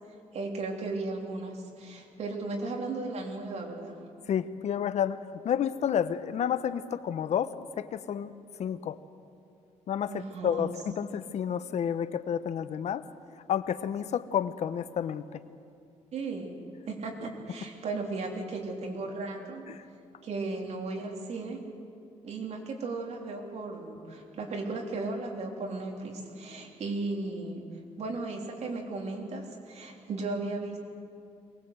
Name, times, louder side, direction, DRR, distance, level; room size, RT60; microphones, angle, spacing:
voice 1, 0.3-4.0 10.1-10.7 16.1-16.5 16.9-19.6 20.2-21.6 22.2-27.6 28.0-30.8, right 3 dB, 60° right, 1 dB, 3.4 m, -35 dB
voice 2, 4.3-5.2 5.4-8.3 8.6-9.0 9.9-10.1 10.4-13.0 13.5-15.2 19.7-19.8, left 8 dB, 65° left, 13 dB, 0.8 m, -30 dB
23.0 x 19.5 x 8.0 m, 2.5 s
cardioid pair, 120°, 13 cm